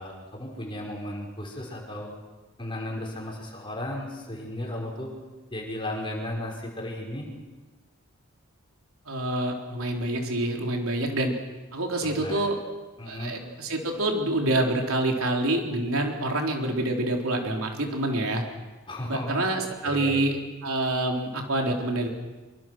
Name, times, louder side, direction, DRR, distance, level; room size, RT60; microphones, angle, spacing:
voice 1, 0.0-2.1 2.6-5.1 5.5-7.3 12.0-12.4 13.0-13.4 18.9-19.3 19.8-20.2, left 1 dB, 25° left, -1 dB, 5.3 m, -35 dB
voice 2, 9.1-11.3 11.7-12.6 13.1-18.4 19.0-22.1, right 1 dB, 85° right, 1 dB, 4.0 m, -27 dB
25.5 x 24.5 x 6.3 m, 1.2 s
head